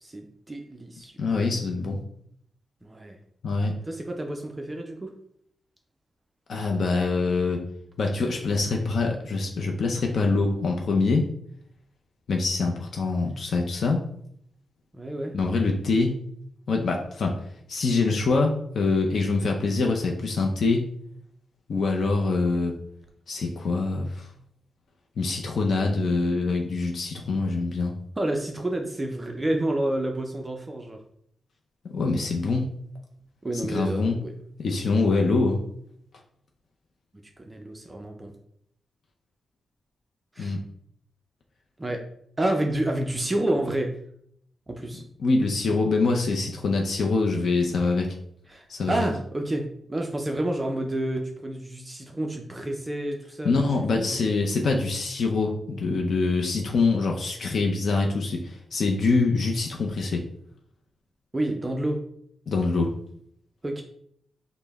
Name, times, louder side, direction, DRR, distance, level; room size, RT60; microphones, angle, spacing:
voice 1, 0.0-1.1 2.8-3.2 3.9-5.1 14.9-15.3 28.2-31.0 33.4-34.3 34.9-35.1 37.4-38.3 40.3-40.6 41.8-42.0 42.4-44.0 44.7-45.0 48.5-54.2 61.3-62.0 63.6-63.8, right 1 dB, 15° right, 2 dB, 0.4 m, -29 dB
voice 2, 1.2-2.0 3.4-3.7 6.5-7.6 8.0-11.3 12.3-14.0 15.3-16.2 16.7-17.4 17.7-20.9 21.7-22.8 23.3-24.3 25.2-27.9 31.9-32.7 33.6-34.2 34.6-35.6 40.4-40.6 45.2-48.1 48.7-49.1 53.4-60.2 62.5-62.9, left 3 dB, 55° left, 1 dB, 0.4 m, -24 dB
5.3 x 2.0 x 3.4 m, 0.68 s
wide cardioid pair, 160°, 0 cm